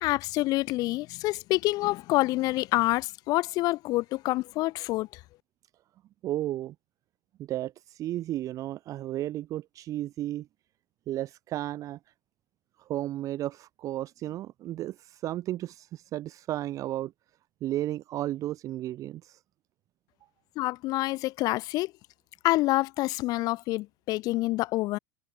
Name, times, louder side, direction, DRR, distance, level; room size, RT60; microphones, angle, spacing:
voice 1, 0.0-5.1 20.6-21.9 22.4-25.0, left 19 dB, 35° left, 0.5 m, -27 dB
voice 2, 6.2-6.7 7.4-10.5 11.1-12.0 12.8-17.1 17.6-19.4, right 14 dB, 30° right, 0.6 m, -33 dB
open air
figure-of-eight pair, 85°, 11 cm